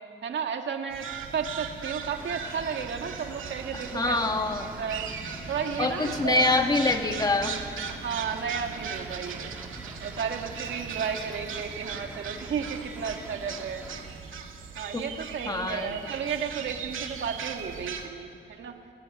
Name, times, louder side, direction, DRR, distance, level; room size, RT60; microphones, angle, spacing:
voice 1, 0.2-4.2 4.6-6.5 7.9-9.5 10.0-13.9 14.8-18.8, right 6 dB, 65° right, 4 dB, 2.1 m, -33 dB
sound 1, 0.9-18.1, right 6 dB, 85° right, 2.4 m, -39 dB
sound 2, 2.1-14.0, right 1 dB, 10° right, 3.4 m, -45 dB
voice 2, 3.9-4.7 5.8-7.5 14.9-15.0 15.5-15.9, left 2 dB, 20° left, 5 dB, 1.7 m, -25 dB
29.5 x 18.0 x 9.9 m, 2.6 s
wide cardioid pair, 170°, 20 cm